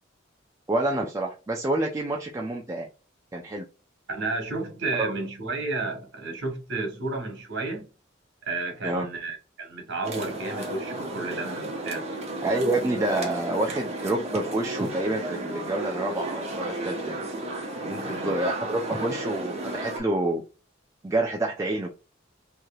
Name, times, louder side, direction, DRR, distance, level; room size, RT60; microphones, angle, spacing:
voice 1, 0.7-2.9 3.3-3.6 4.9-5.1 8.8-9.1 12.4-17.2 18.2-20.4 21.0-21.9, right 2 dB, 15° right, 0.4 m, -28 dB
voice 2, 4.1-7.9 8.4-12.1 17.7-18.4, right 3 dB, 60° right, 1.4 m, -32 dB
sound 1, 10.0-20.0, right 1 dB, 35° right, 0.9 m, -33 dB
3.2 x 2.7 x 2.3 m
head